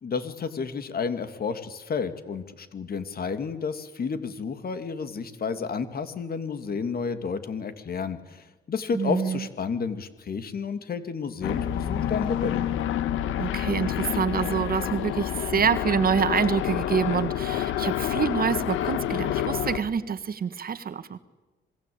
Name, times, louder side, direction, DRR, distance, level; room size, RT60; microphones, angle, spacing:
voice 1, 0.0-12.7, left 5 dB, 50° left, 10 dB, 2.8 m, -31 dB
voice 2, 8.9-9.5 13.4-21.2, right 7 dB, 50° right, 13 dB, 1.7 m, -26 dB
sound 1, 11.4-19.8, left 11 dB, 90° left, 1.6 m, -28 dB
27.0 x 20.5 x 8.8 m, 1.2 s
cardioid pair, 90°, 20 cm